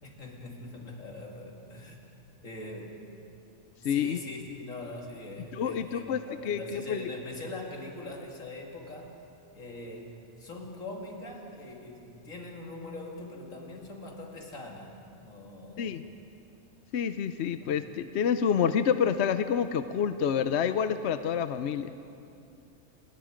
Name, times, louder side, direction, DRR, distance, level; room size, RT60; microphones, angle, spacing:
voice 1, 0.0-2.0 2.4-3.0 3.8-9.1 9.5-15.0 15.2-16.0 17.6-17.7, left 2 dB, 80° left, 0 dB, 3.1 m, -42 dB
voice 2, 3.8-4.2 5.5-7.0 15.8-16.0 16.9-21.9, left 7 dB, 60° left, 11 dB, 0.9 m, -28 dB
28.5 x 21.0 x 5.1 m, 2.6 s
omnidirectional pair, 1.4 m